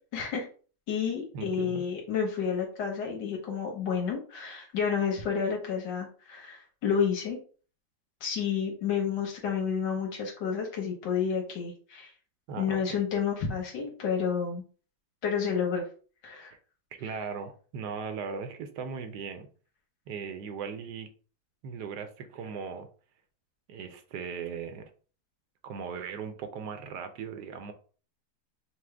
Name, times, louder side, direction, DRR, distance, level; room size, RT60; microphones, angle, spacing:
voice 1, 0.1-0.5 0.9-7.4 8.2-12.1 12.6-14.6 15.2-15.9 16.2-16.5, left 7 dB, 85° left, -1 dB, 1.7 m, -30 dB
voice 2, 1.3-1.9 12.5-12.8 16.9-19.5 20.1-21.1 21.6-22.9 23.7-24.9 25.6-27.7, right 6 dB, 75° right, 8 dB, 1.3 m, -38 dB
6.0 x 2.2 x 3.3 m, 0.39 s
omnidirectional pair, 1.8 m